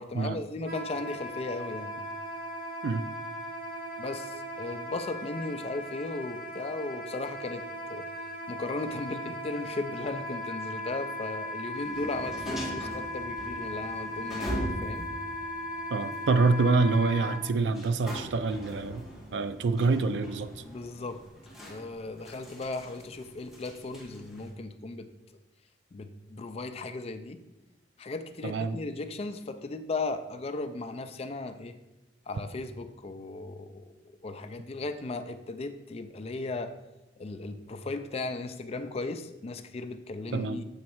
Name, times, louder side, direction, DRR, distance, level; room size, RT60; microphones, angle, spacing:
voice 1, 0.0-2.0 4.0-8.1 8.5-14.5 14.8-15.1 20.6-21.2 21.6-25.1 25.9-27.4 28.0-31.8 32.3-33.9 34.2-36.7 37.2-40.6, left 3 dB, 35° left, 9 dB, 0.4 m, -36 dB
Wind instrument woodwind instrument, 0.6-17.4, equal, 60° right, 1.2 m, -38 dB
sound 1, 11.7-24.5, equal, ahead, 1.3 m, -41 dB
voice 2, 15.9-19.1 19.3-20.6 28.4-28.8 40.3-40.6, right 3 dB, 85° right, 11 dB, 0.4 m, -26 dB
7.2 x 3.1 x 4.4 m, 0.98 s
head